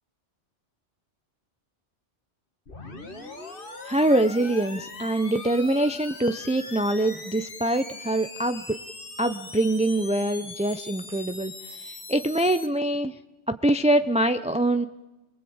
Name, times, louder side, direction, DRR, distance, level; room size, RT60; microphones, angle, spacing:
sound 1, 2.7-12.7, left 3 dB, 50° left, 2.3 m, -41 dB
voice 1, 3.8-8.8 9.2-11.5 11.8-13.1 13.5-14.9, right 1 dB, 10° right, 10 dB, 0.6 m, -24 dB
22.5 x 22.0 x 8.8 m, 1.1 s
omnidirectional pair, 1.2 m